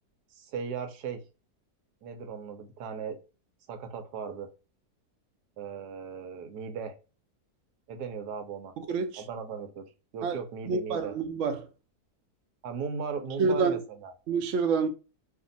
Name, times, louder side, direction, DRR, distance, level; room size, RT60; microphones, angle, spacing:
voice 1, 0.3-1.2 2.0-3.2 3.7-4.5 5.6-6.9 7.9-8.7 9.2-11.1 12.6-14.1, right 6 dB, 90° right, 1.3 m, -37 dB
voice 2, 8.9-9.2 10.2-10.3 10.7-11.7 13.4-13.8 14.3-14.9, right 5 dB, 60° right, 0.9 m, -27 dB
2.8 x 2.6 x 3.8 m
omnidirectional pair, 1.7 m